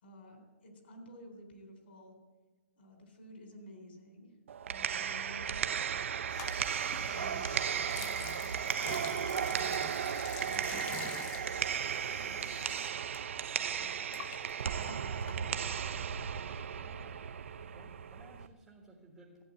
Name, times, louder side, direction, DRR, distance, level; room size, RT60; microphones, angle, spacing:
voice 1, 0.0-2.2 2.8-4.4 4.6-6.2 7.0-7.5 7.8-14.4 14.7-16.0, equal, 50° left, 4 dB, 3.6 m, -54 dB
sound 1, 4.5-18.5, right 8 dB, 60° right, 0.6 m, -35 dB
sound 2, 6.3-13.2 13.4-15.8, left 8 dB, 15° left, 0.6 m, -47 dB
voice 2, 16.8-17.2 17.7-19.4, right 2 dB, 5° right, -2 dB, 1.5 m, -57 dB
14.5 x 8.8 x 8.5 m, 1.3 s
hypercardioid pair, 180°, 8 cm